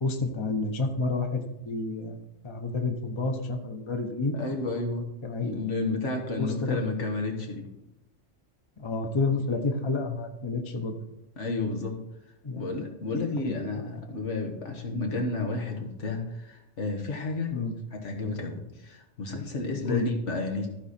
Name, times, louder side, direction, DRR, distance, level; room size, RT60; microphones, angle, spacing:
voice 1, 0.0-2.2 2.4-4.4 5.2-5.6 6.4-6.8 8.8-10.9 12.4-12.6 13.1-13.6 17.5-17.7 19.9-20.1, left 3 dB, 25° left, 5 dB, 0.9 m, -29 dB
voice 2, 4.3-5.1 5.4-7.7 9.5-9.6 11.4-11.9 12.6-17.5 17.9-20.7, left 3 dB, 85° left, 2 dB, 1.8 m, -31 dB
14.5 x 4.8 x 4.3 m, 0.90 s
omnidirectional pair, 1.2 m